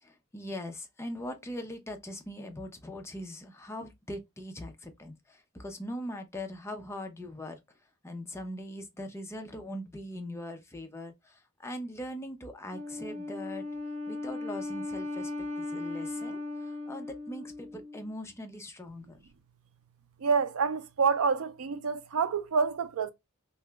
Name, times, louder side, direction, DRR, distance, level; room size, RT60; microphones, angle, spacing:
voice 1, 0.0-7.6 8.0-13.6 14.1-19.2, left 1 dB, 10° left, 0.4 m, -41 dB
Wind instrument woodwind instrument, 12.7-18.1, left 2 dB, 35° right, 0.8 m, -37 dB
voice 2, 20.2-23.1, right 5 dB, 70° right, 0.4 m, -27 dB
2.8 x 2.1 x 3.3 m
head